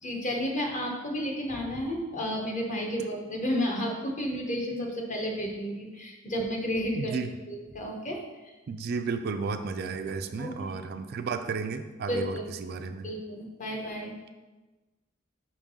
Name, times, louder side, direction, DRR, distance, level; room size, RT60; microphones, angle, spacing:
voice 1, 0.0-7.2 7.5-8.5 10.4-10.5 12.1-12.4 13.0-14.1, equal, 40° left, 1 dB, 1.0 m, -32 dB
voice 2, 7.0-7.3 8.7-13.1, right 5 dB, 50° right, 8 dB, 0.3 m, -33 dB
5.4 x 3.6 x 5.3 m, 1.2 s
head